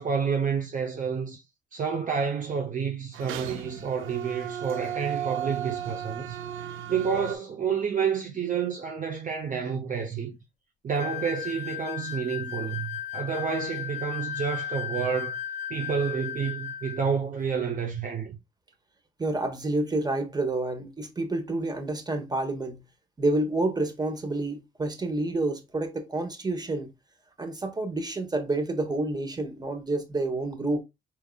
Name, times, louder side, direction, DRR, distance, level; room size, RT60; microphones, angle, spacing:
voice 1, 0.0-1.4 1.7-10.4 10.8-15.4 15.7-18.4, right 6 dB, 40° right, 0.8 m, -29 dB
sound 1, 3.1-7.4, right 10 dB, 90° right, 0.5 m, -35 dB
sound 2, 11.0-17.1, left 9 dB, 35° left, 0.4 m, -35 dB
voice 2, 19.2-22.8 23.2-26.9 27.4-30.8, right 2 dB, 20° right, 1.2 m, -29 dB
4.5 x 3.6 x 2.3 m
cardioid pair, 90°, 20 cm